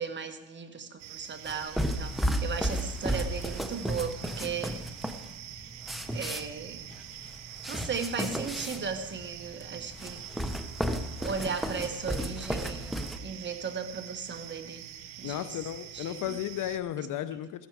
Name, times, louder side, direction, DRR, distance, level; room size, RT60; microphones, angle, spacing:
voice 1, 0.0-2.2 2.4-4.8 6.1-6.8 7.7-10.3 11.2-14.8 15.2-15.6 15.9-16.4 17.0-17.1, right 6 dB, 25° right, 7 dB, 1.2 m, -36 dB
sound 1, 1.0-16.8, right 10 dB, 65° right, 1.4 m, -45 dB
sound 2, 1.4-13.2, equal, ahead, 0.6 m, -34 dB
voice 2, 15.2-17.7, left 11 dB, 40° left, 12 dB, 0.6 m, -34 dB
14.5 x 14.5 x 4.7 m, 1.1 s
cardioid pair, 140°, 48 cm